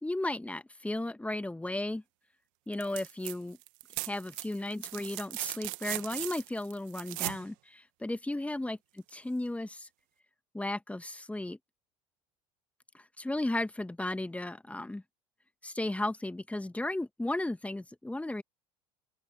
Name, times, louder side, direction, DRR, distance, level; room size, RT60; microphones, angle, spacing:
voice 1, 0.0-2.0 2.7-3.6 4.0-8.8 9.1-9.9 10.5-11.6 12.9-15.0 15.6-18.4, left 1 dB, 5° left, 1.5 m, -35 dB
sound 1, 2.7-3.4 3.6-7.4 9.1-9.2, right 26 dB, 70° right, 1.6 m, -38 dB
open air
hypercardioid pair, 75°, 18 cm